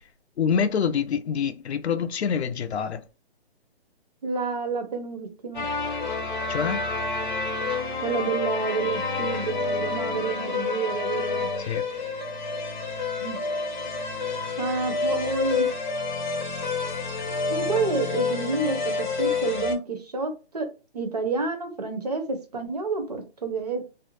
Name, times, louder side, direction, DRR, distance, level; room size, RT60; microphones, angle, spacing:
voice 1, 0.4-3.0 6.5-6.8 11.7-11.8, left 7 dB, 90° left, 0.5 m, -26 dB
voice 2, 4.2-5.6 8.0-11.5 13.2-13.4 14.6-15.7 17.5-20.7 20.9-23.8, right 4 dB, 40° right, 0.5 m, -29 dB
sound 1, 5.5-19.7, left 4 dB, 45° left, 0.6 m, -29 dB
2.4 x 2.1 x 2.9 m
hypercardioid pair, 170°, 32 cm